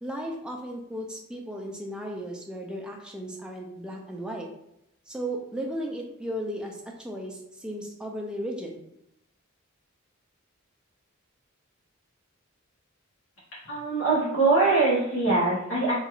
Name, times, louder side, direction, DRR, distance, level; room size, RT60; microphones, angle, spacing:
voice 1, 0.0-4.5 5.1-8.8, equal, 5° right, 0 dB, 0.3 m, -35 dB
voice 2, 13.7-15.9, right 3 dB, 60° left, -8 dB, 1.0 m, -23 dB
2.9 x 2.4 x 2.3 m, 0.81 s
head